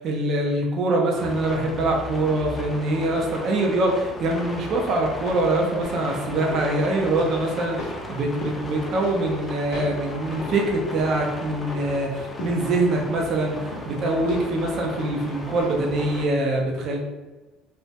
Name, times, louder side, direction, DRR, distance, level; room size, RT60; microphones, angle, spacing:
voice 1, 0.0-17.0, right 2 dB, 55° right, 0 dB, 0.4 m, -24 dB
sound 1, 1.2-16.3, left 1 dB, 20° left, 0.3 m, -37 dB
sound 2, 5.0-16.0 16.3-16.4, left 2 dB, 75° left, 0.5 m, -39 dB
2.2 x 2.1 x 2.7 m, 1.2 s
supercardioid pair, 105°, 0 cm